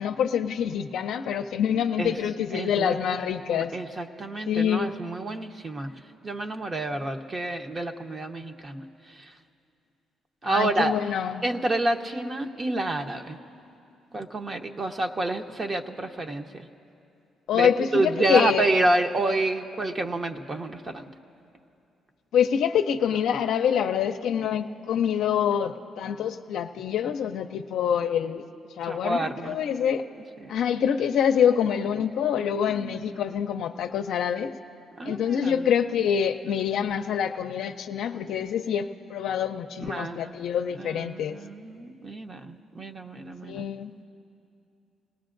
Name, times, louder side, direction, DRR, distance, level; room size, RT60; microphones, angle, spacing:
voice 1, 0.0-3.7 4.5-5.0 10.4-11.4 17.5-18.7 22.3-28.4 28.8-30.0 30.5-34.5 35.0-41.4 43.4-44.0, left 8 dB, 80° left, 4 dB, 0.5 m, -26 dB
voice 2, 2.5-3.0 3.5-5.9 6.2-9.3 10.4-11.0 11.4-13.4 14.1-16.7 17.5-21.0 28.8-29.6 30.4-30.6 32.7-33.0 35.0-35.7 39.8-40.3 40.8-43.6, right 2 dB, 35° right, 4 dB, 1.0 m, -29 dB
28.5 x 18.5 x 2.6 m, 2.6 s
cardioid pair, 90°, 0 cm